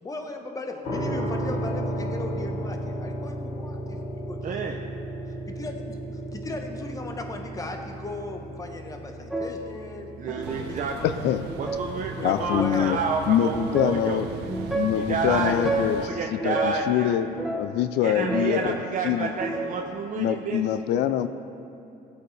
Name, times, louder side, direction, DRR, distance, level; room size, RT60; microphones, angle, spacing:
voice 1, 0.0-4.7 5.5-10.1 10.5-11.2 12.2-13.0 18.5-18.8, left 2 dB, 20° left, 4 dB, 1.1 m, -37 dB
sound 1, 0.8-15.7, right 1 dB, 60° left, 2.3 m, -35 dB
voice 2, 4.4-4.8 10.2-10.9 11.6-14.2 14.9-17.1 18.0-20.8 21.2-21.3, right 5 dB, 50° right, 2 dB, 0.7 m, -30 dB
sound 2, 9.3-9.7 10.3-10.7 11.4-11.9 12.4-12.9 13.5-14.0 14.5-15.0 15.4-16.0 16.4-16.9 17.2-18.7 19.1-19.9, right 2 dB, ahead, 1.0 m, -31 dB
sound 3, 10.4-16.1, right 6 dB, 90° right, 0.7 m, -38 dB
voice 3, 11.0-11.4 12.2-13.0 13.3-14.3 14.7-16.1 16.4-18.7 19.0-19.3 20.2-21.3, left 10 dB, 80° left, 11 dB, 0.4 m, -24 dB
16.5 x 8.3 x 3.3 m, 2.9 s
cardioid pair, 110°, 17 cm